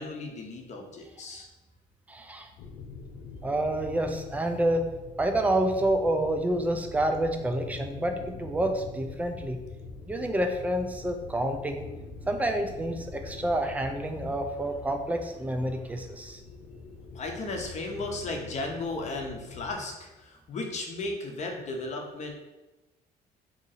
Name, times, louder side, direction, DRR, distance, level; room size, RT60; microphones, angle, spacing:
voice 1, 0.0-1.5 17.1-22.3, left 2 dB, 45° left, 2 dB, 0.7 m, -35 dB
voice 2, 2.1-2.5 3.4-4.9 5.2-9.6 10.1-11.9 12.3-16.4, right 1 dB, 10° right, 5 dB, 0.4 m, -28 dB
sound 1, 2.6-19.8, left 4 dB, 80° left, 0.5 m, -45 dB
2.8 x 2.6 x 4.0 m, 1.1 s
cardioid pair, 110°, 17 cm